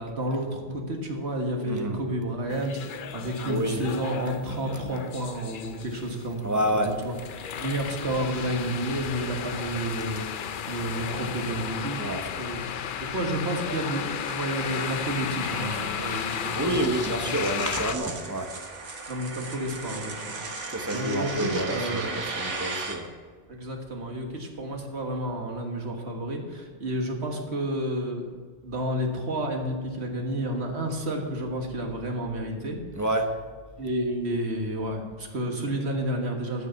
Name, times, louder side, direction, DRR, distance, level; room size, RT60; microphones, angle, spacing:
voice 1, 0.0-7.1 7.6-12.0 12.4-12.6 13.0-17.4 19.1-20.4 20.9-22.2 23.5-28.3 28.6-32.8 33.8-36.7, right 1 dB, 65° right, 2 dB, 1.9 m, -31 dB
voice 2, 1.7-2.0 3.5-3.8 6.4-6.9 12.0-12.2 16.5-18.5 20.7-23.1 33.0-33.3, right 1 dB, 15° right, 4 dB, 0.9 m, -28 dB
sound 1, 2.5-17.9, left 8 dB, 55° left, 0.6 m, -34 dB
sound 2, 12.2-23.0, right 3 dB, 85° right, 1.8 m, -37 dB
13.5 x 6.7 x 5.9 m, 1.5 s
omnidirectional pair, 1.2 m